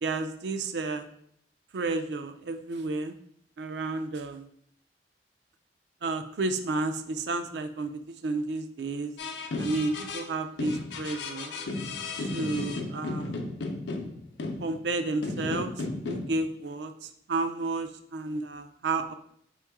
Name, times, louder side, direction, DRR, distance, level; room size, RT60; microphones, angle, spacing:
voice 1, 0.0-1.1 1.7-3.1 3.6-4.5 6.0-9.1 9.6-11.5 12.3-13.4 14.6-15.7 16.1-16.9 17.3-19.1, right 3 dB, 70° right, 9 dB, 0.4 m, -31 dB
sound 1, 9.2-10.3 10.6-14.9 15.2-16.4, left 3 dB, 80° left, 0.6 m, -34 dB
4.4 x 3.0 x 3.5 m, 0.67 s
head